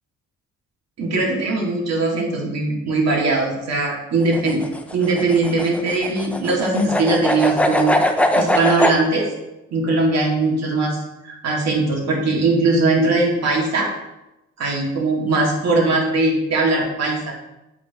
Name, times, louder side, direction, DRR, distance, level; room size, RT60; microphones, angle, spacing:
voice 1, 1.0-4.6 4.9-8.0 8.3-9.3 9.7-13.9 14.6-17.3, right 3 dB, 60° right, -2 dB, 2.0 m, -20 dB
sound 1, 4.2-9.0, left 1 dB, 5° left, 0.6 m, -21 dB
8.4 x 5.0 x 2.9 m, 0.94 s
cardioid pair, 90°, 30 cm